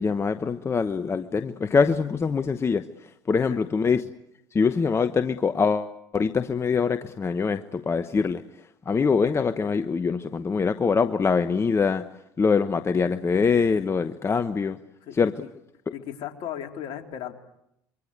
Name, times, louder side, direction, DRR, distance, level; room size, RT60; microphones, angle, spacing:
voice 1, 0.0-4.0 4.5-8.4 8.9-12.1 12.4-14.8 15.1-15.3, left 5 dB, 30° left, 1.1 m, -24 dB
voice 2, 15.9-17.3, left 10 dB, 60° left, 3.5 m, -36 dB
26.0 x 24.0 x 8.2 m
hypercardioid pair, 80°, 10 cm